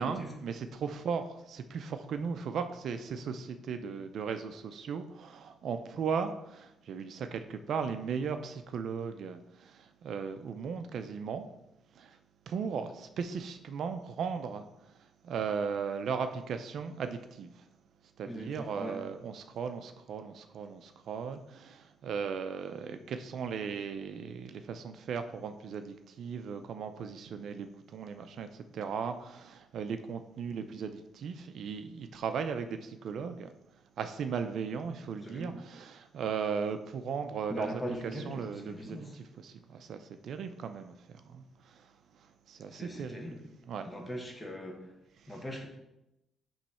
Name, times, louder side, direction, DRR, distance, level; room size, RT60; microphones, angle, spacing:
voice 1, 0.0-11.5 11.9-12.2 12.5-17.7 18.0-43.4 43.7-43.9 45.2-45.4, right 6 dB, 65° right, 0.5 m, -37 dB
voice 2, 18.3-19.0 35.2-35.6 37.5-39.1 42.7-43.4 43.8-44.9 45.3-45.7, equal, 15° left, 1.4 m, -40 dB
7.1 x 3.1 x 5.5 m
cardioid pair, 90°, 0 cm